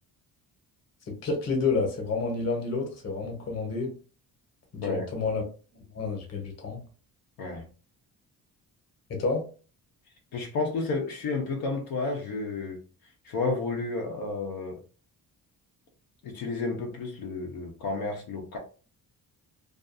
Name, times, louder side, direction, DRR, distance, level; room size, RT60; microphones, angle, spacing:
voice 1, 1.1-3.9 4.7-5.4 5.9-6.8 9.1-9.4, left 4 dB, 45° left, 1.0 m, -29 dB
voice 2, 10.3-12.8 13.3-14.8 16.2-18.6, left 3 dB, 85° left, 0.7 m, -31 dB
2.5 x 2.4 x 2.5 m
cardioid pair, 125°, 36 cm